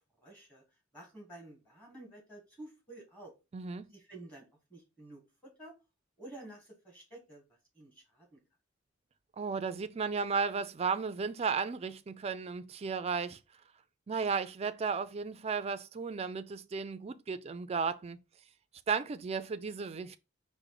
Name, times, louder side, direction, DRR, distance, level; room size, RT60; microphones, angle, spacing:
voice 1, 0.2-0.6 0.9-3.3 3.9-5.7 6.2-8.4, right 1 dB, 5° left, 1.3 m, -51 dB
voice 2, 3.5-3.9 9.4-13.4 14.1-18.2 18.9-20.2, right 5 dB, 30° right, 0.3 m, -34 dB
5.0 x 2.1 x 4.6 m
head